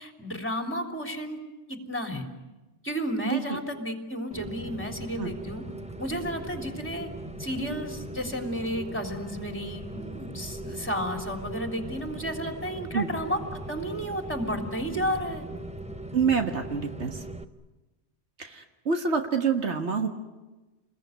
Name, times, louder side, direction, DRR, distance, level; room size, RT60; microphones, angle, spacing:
voice 1, 0.0-1.4 1.7-2.3 2.8-5.6 6.0-7.1 7.4-15.5, equal, 10° left, 4 dB, 3.3 m, -32 dB
voice 2, 3.3-3.6 5.2-5.3 12.9-13.1 16.1-17.2 18.4-20.1, right 5 dB, 80° right, 5 dB, 1.9 m, -27 dB
Rain, 4.3-17.4, right 1 dB, 5° right, 0.8 m, -39 dB
28.5 x 21.5 x 9.5 m, 1.1 s
omnidirectional pair, 1.2 m